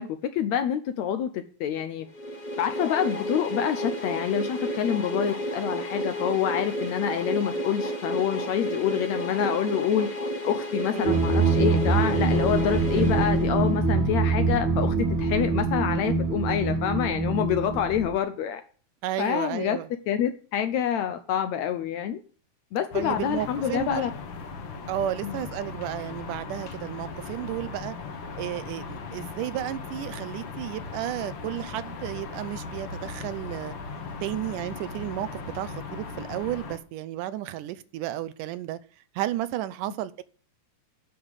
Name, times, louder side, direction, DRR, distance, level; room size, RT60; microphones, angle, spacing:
voice 1, 0.0-2.1 2.6-10.2 10.4-18.6 19.2-19.8 20.1-22.2 22.7-24.1 25.2-25.4, left 9 dB, 75° left, 1.7 m, -27 dB
sound 1, 2.1-14.0, equal, 40° left, 0.6 m, -31 dB
voice 2, 10.9-11.3 19.0-19.9 22.9-24.1 24.9-28.0 28.4-33.7 34.2-38.8 39.2-40.2, right 13 dB, 80° right, 2.1 m, -33 dB
sound 2, 11.0-18.2, right 4 dB, 50° right, 1.6 m, -24 dB
sound 3, 22.9-36.8, left 4 dB, 60° left, 1.3 m, -38 dB
10.0 x 5.7 x 8.1 m
omnidirectional pair, 3.8 m